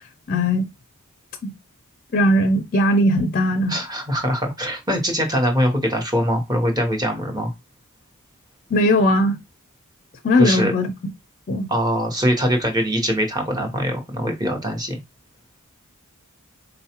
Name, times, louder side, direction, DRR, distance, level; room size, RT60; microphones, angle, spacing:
voice 1, 0.3-0.7 1.4-1.5 2.1-3.8 8.7-9.4 10.2-10.9 11.5-11.7, left 1 dB, 40° left, 0.4 m, -18 dB
voice 2, 3.7-7.5 10.4-10.7 11.7-15.0, equal, 20° right, 0.9 m, -22 dB
4.0 x 2.3 x 2.8 m
head